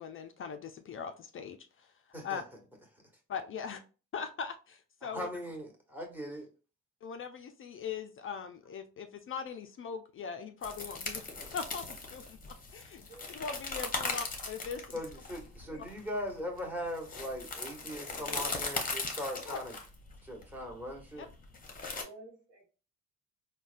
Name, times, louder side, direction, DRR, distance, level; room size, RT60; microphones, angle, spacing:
voice 1, 0.0-1.9 2.2-2.4 3.3-3.8 4.1-5.3 7.0-11.2 11.5-15.0 19.5-19.6 21.2-21.3, left 6 dB, 45° left, 0.4 m, -41 dB
voice 2, 5.0-6.5 14.9-19.7 20.2-21.3, equal, 5° right, 1.2 m, -39 dB
sound 1, 10.6-22.0, left 3 dB, 30° left, 0.8 m, -39 dB
voice 3, 13.0-13.4 15.6-15.9 17.3-17.4 17.8-18.7 19.5-19.6 21.9-22.6, right 1 dB, 50° right, 1.4 m, -53 dB
3.9 x 2.2 x 2.4 m
cardioid pair, 90°, 30 cm